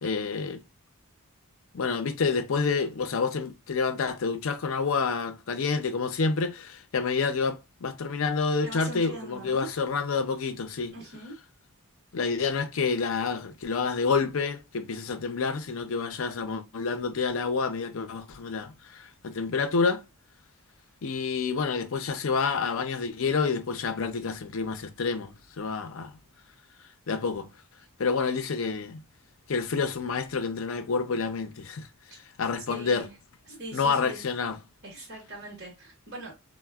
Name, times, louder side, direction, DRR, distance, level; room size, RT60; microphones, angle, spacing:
voice 1, 0.0-0.6 1.7-10.9 12.1-20.0 21.0-26.1 27.1-27.5 28.0-29.0 29.5-31.9 32.4-33.1 33.7-34.6, left 4 dB, 65° left, 0.5 m, -28 dB
voice 2, 8.6-9.7 10.9-11.3 32.1-32.2 32.7-33.1 33.5-34.2 34.8-36.3, right 2 dB, 50° right, 0.9 m, -41 dB
4.0 x 2.1 x 2.2 m
head